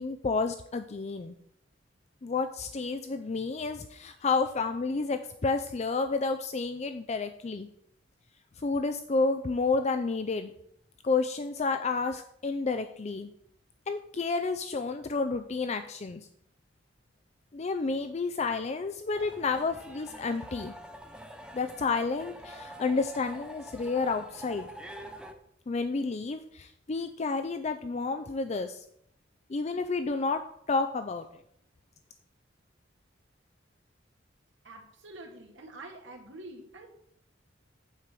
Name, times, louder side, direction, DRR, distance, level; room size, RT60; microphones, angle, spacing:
voice 1, 0.0-1.3 2.2-7.7 8.6-10.5 11.0-13.3 13.9-16.3 17.5-20.7 21.5-24.7 25.7-28.8 29.5-30.4 30.7-31.3, left 4 dB, 35° left, 8 dB, 0.4 m, -30 dB
sound 1, 19.1-25.3, equal, 5° right, 0.8 m, -46 dB
voice 2, 34.6-36.9, right 2 dB, 80° right, 1 dB, 2.1 m, -46 dB
9.0 x 4.7 x 7.5 m, 0.70 s
head